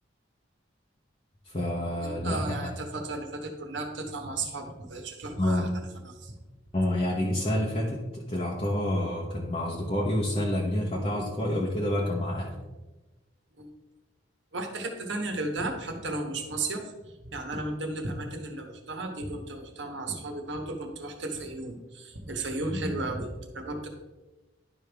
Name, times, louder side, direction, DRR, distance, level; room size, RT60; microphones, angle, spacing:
voice 1, 1.5-2.7 5.4-5.7 6.7-12.5 22.7-22.9, left 1 dB, 35° left, -4 dB, 1.0 m, -28 dB
voice 2, 2.0-5.7 6.0-6.3 13.6-13.7 14.5-23.9, right 2 dB, 70° right, 3 dB, 1.3 m, -34 dB
11.0 x 5.3 x 3.5 m, 1.2 s
head